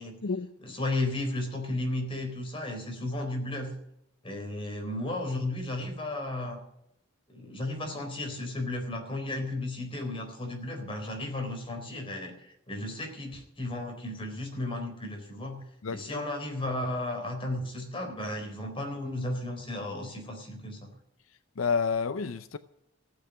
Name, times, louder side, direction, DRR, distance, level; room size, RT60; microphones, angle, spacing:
voice 1, 0.6-3.7 4.2-6.6 7.3-15.6 15.9-20.9, left 1 dB, 25° left, 3.9 m, -34 dB
voice 2, 15.8-16.3 21.6-22.6, left 5 dB, 80° left, 0.6 m, -30 dB
15.0 x 8.1 x 9.7 m
head